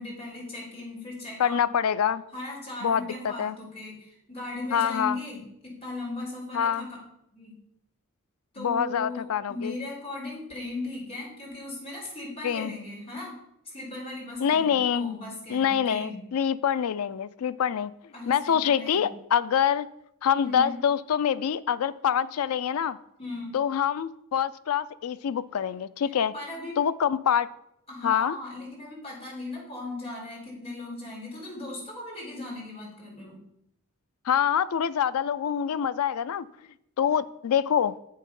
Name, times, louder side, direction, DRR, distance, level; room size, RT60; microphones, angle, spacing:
voice 1, 0.0-1.7 2.3-6.9 7.3-7.5 8.5-13.4 13.6-16.2 18.1-19.1 20.4-20.8 23.2-23.6 26.3-26.7 27.9-33.4, left 2 dB, 30° left, 4.2 m, -38 dB
voice 2, 1.4-2.2 2.8-3.5 4.7-5.2 6.5-6.9 8.6-9.7 12.4-12.7 14.4-15.2 15.5-17.9 18.3-19.9 20.2-23.0 23.5-26.3 26.8-27.5 28.0-28.4 34.3-36.5 37.0-38.0, left 8 dB, 85° left, 0.4 m, -25 dB
8.0 x 6.5 x 5.4 m
head